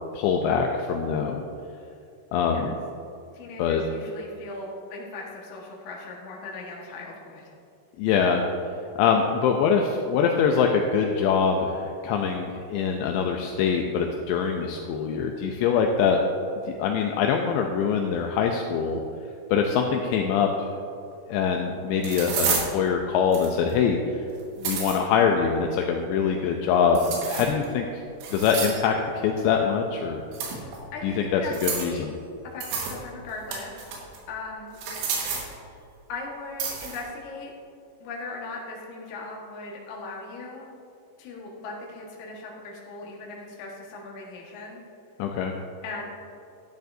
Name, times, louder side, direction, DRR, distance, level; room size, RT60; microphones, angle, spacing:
voice 1, 0.1-1.4 2.3-2.7 3.6-3.8 8.0-8.4 9.0-16.2 16.7-19.0 19.5-20.7 21.3-24.2 24.6-28.0 28.3-30.2 31.0-32.2 45.2-45.5, left 6 dB, 85° left, 2 dB, 2.6 m, -24 dB
voice 2, 2.4-2.7 3.3-7.5 30.9-32.1 32.4-33.8 34.3-34.8 36.1-37.5 38.0-40.7 41.2-44.8 45.8-46.0, left 3 dB, 60° left, -3 dB, 2.1 m, -38 dB
sound 1, 21.1-21.2 22.0-22.7 23.3-23.7 24.4-25.0 27.0-27.7 28.2-28.9 30.3-30.8 31.5-32.0 32.6-33.0 33.3-34.2 34.7-35.5 36.6-37.0, right 5 dB, 85° right, 4.2 m, -30 dB
12.5 x 10.5 x 2.7 m, 2.6 s
omnidirectional pair, 5.6 m